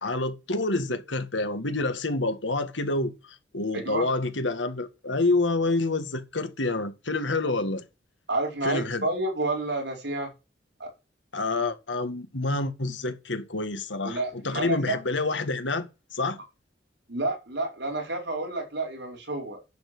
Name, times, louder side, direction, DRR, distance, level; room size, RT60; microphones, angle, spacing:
voice 1, 0.0-7.8 8.6-9.1 11.3-16.4, left 2 dB, 75° left, 1.9 m, -28 dB
voice 2, 3.7-4.1 8.3-10.3 10.8-10.9 14.0-15.0 17.1-19.6, right 2 dB, 65° right, 4.9 m, -30 dB
10.5 x 7.4 x 6.2 m
head